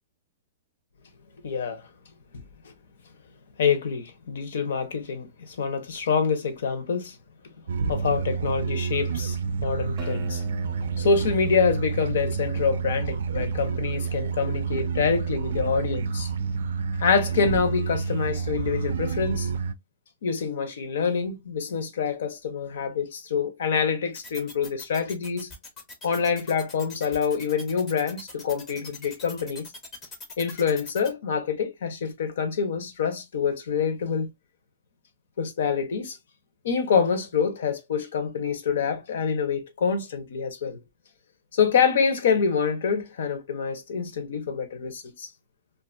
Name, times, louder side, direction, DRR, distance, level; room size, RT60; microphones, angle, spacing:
voice 1, 1.4-1.8 2.6-2.7 3.6-7.2 7.9-10.4 11.0-16.3 17.0-19.5 20.2-25.5 26.0-29.6 30.4-34.3 35.4-36.2 36.6-40.8 41.5-45.3, left 6 dB, 70° left, 0.7 m, -26 dB
sound 1, 7.7-19.7, right 5 dB, 75° right, 0.4 m, -29 dB
Acoustic guitar, 10.0-13.0, right 1 dB, 20° right, 0.6 m, -43 dB
sound 2, 24.1-31.1, left 3 dB, 20° left, 0.5 m, -42 dB
2.5 x 2.3 x 2.4 m
hypercardioid pair, 175°, 0 cm